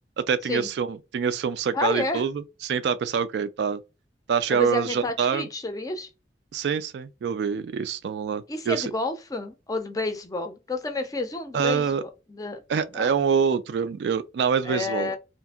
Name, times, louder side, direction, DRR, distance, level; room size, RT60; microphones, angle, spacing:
voice 1, 0.2-3.8 4.3-5.4 6.5-8.9 11.5-12.0 12.7-15.2, right 6 dB, 70° right, 0.3 m, -25 dB
voice 2, 1.7-2.3 4.5-6.1 8.5-12.6 12.9-13.1 14.6-15.2, left 2 dB, 20° left, 0.4 m, -30 dB
2.7 x 2.5 x 2.3 m
head